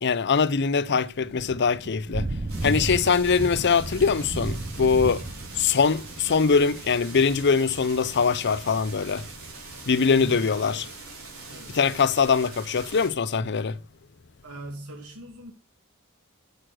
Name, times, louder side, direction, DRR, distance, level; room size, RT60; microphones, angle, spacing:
voice 1, 0.0-2.2 2.6-5.2 5.6-9.2 9.9-10.8 11.7-13.8, left 5 dB, 50° left, 0.6 m, -22 dB
Thunder / Rain, 1.2-10.7, right 2 dB, 30° right, 0.6 m, -35 dB
sound 1, 2.5-13.1, right 3 dB, 65° right, 4.3 m, -43 dB
voice 2, 10.1-10.9 11.5-11.8 14.4-15.5, right 1 dB, 80° right, 2.6 m, -40 dB
7.7 x 6.4 x 6.3 m
head